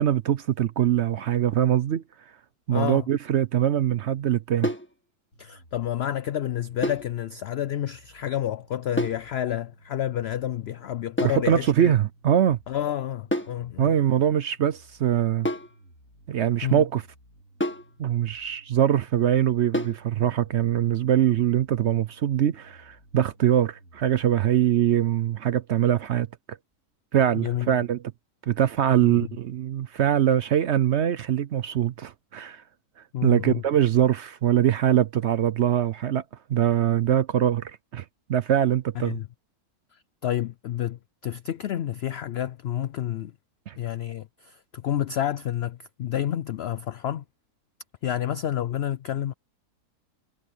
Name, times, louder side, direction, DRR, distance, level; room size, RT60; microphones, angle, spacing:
voice 1, 0.0-2.0 2.7-4.7 11.2-12.6 13.8-15.5 16.3-17.0 18.0-26.6 27.1-28.0 28.5-32.6 33.2-36.2 36.5-38.0 38.3-39.2 43.7-43.8, right 10 dB, 60° right, 0.7 m, -23 dB
voice 2, 2.7-3.1 5.4-11.9 12.7-13.9 16.6-16.8 27.3-27.7 29.1-29.3 33.1-33.6 39.0-39.3 39.9-43.3 43.8-47.2 48.0-49.3, left 11 dB, 90° left, 0.5 m, -29 dB
sound 1, 4.6-4.9 6.8-7.1 9.0-9.3 11.2-11.5 13.3-13.6 15.4-15.8 17.6-17.9 19.7-20.0, left 1 dB, 10° left, 1.7 m, -28 dB
sound 2, 5.3-24.3, right 1 dB, 55° left, 3.7 m, -56 dB
omnidirectional pair, 1.6 m